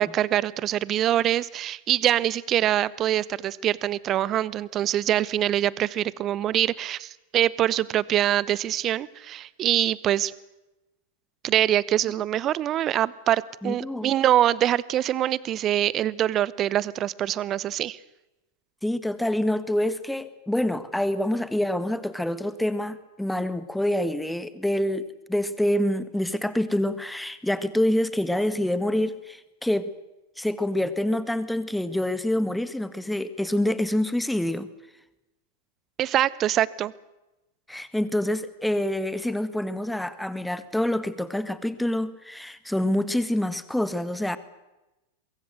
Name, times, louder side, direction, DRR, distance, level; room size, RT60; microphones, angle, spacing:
voice 1, 0.0-10.3 11.4-18.0 36.0-36.9, right 12 dB, 30° right, 22 dB, 0.9 m, -24 dB
voice 2, 13.6-14.1 18.8-29.9 30.4-34.7 37.7-44.4, left 1 dB, 5° left, 14 dB, 1.6 m, -26 dB
23.5 x 23.0 x 7.9 m, 1.0 s
figure-of-eight pair, 90°, 0 cm